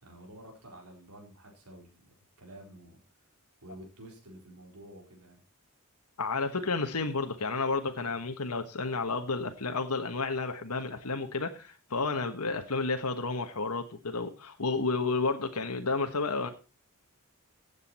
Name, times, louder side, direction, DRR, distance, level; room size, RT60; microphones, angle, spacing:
voice 1, 0.0-3.0 3.6-5.4, right 1 dB, 80° right, 0 dB, 4.3 m, -50 dB
voice 2, 6.2-16.5, left 3 dB, 85° left, 6 dB, 1.4 m, -31 dB
15.5 x 8.2 x 4.3 m, 0.31 s
head